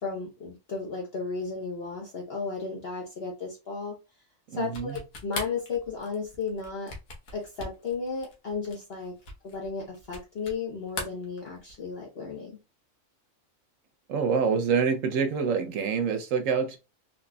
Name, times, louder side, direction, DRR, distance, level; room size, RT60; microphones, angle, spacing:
voice 1, 0.0-3.9 4.5-6.9 7.3-9.1 9.4-12.6, left 4 dB, 50° left, 1.0 m, -34 dB
voice 2, 4.5-5.0 14.1-16.8, right 6 dB, 75° right, 1.0 m, -26 dB
sound 1, 4.6-10.6 10.9-11.9, left 3 dB, 90° left, 1.4 m, -40 dB
4.1 x 2.9 x 2.2 m
omnidirectional pair, 1.4 m